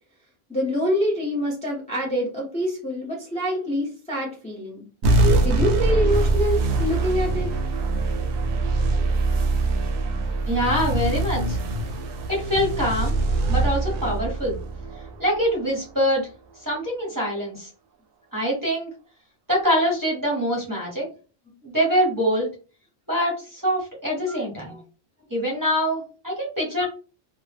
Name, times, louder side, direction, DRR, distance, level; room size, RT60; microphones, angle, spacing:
voice 1, 0.5-4.9 5.4-7.5 24.3-24.4 26.8-26.9, left 1 dB, 10° left, -3 dB, 0.6 m, -26 dB
sound 1, 5.0-15.9, right 2 dB, 75° right, 0.8 m, -23 dB
voice 2, 10.5-11.6 12.3-13.1 13.5-14.6 15.2-16.3 16.6-17.7 18.3-18.9 19.5-21.1 21.6-22.5 23.1-24.8 25.3-26.9, equal, 20° right, -4 dB, 0.8 m, -24 dB
2.1 x 2.1 x 3.2 m, 0.35 s
omnidirectional pair, 1.1 m